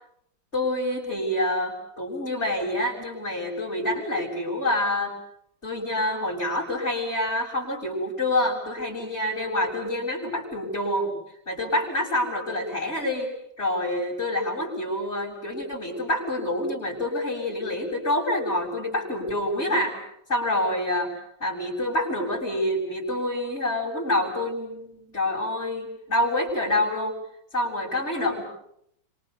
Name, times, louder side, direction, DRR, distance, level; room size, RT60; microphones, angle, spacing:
voice 1, 0.5-5.1 5.6-11.2 11.5-13.3 13.6-20.0 20.3-21.1 21.4-27.1 27.5-28.4, left 1 dB, 35° left, -3 dB, 7.9 m, -27 dB
29.5 x 26.5 x 7.0 m, 0.73 s
omnidirectional pair, 2.0 m